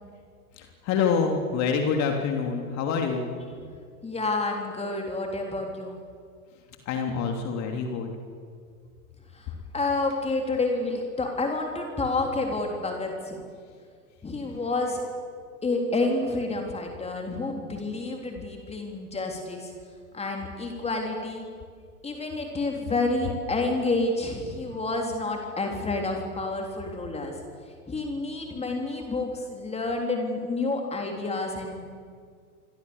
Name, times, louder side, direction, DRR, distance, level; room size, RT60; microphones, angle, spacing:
voice 1, 0.6-3.3 6.8-8.1, left 5 dB, 35° left, 3 dB, 3.2 m, -26 dB
voice 2, 4.0-6.0 9.3-13.5 14.2-15.0 15.6-19.7 20.1-21.5 22.0-27.3 27.9-31.9, left 2 dB, 15° left, 2 dB, 3.7 m, -29 dB
28.0 x 24.5 x 7.2 m, 2.1 s
figure-of-eight pair, 95°, 45 cm